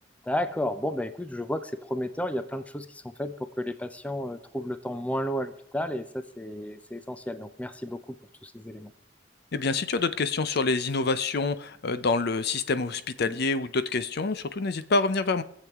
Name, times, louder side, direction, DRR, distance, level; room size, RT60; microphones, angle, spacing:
voice 1, 0.2-8.2 8.4-8.9 13.2-13.3, left 1 dB, 5° left, 11 dB, 0.5 m, -32 dB
voice 2, 9.5-15.4, left 3 dB, 60° left, 12 dB, 0.7 m, -27 dB
22.5 x 7.6 x 3.6 m, 0.69 s
head